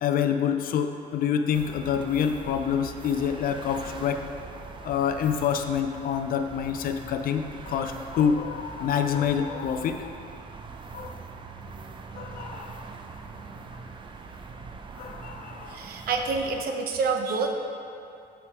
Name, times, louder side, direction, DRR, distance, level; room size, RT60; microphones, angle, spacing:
voice 1, 0.0-4.2 4.8-10.1 10.9-11.2 12.1-12.8 13.7-13.8 15.0-15.8, left 8 dB, 60° left, 7 dB, 0.5 m, -27 dB
sound 1, 1.5-16.6, right 4 dB, 30° right, 0.5 m, -42 dB
voice 2, 15.7-17.5, right 4 dB, 65° right, 4 dB, 0.8 m, -27 dB
6.2 x 5.8 x 4.8 m, 2.7 s
cardioid pair, 110°, 17 cm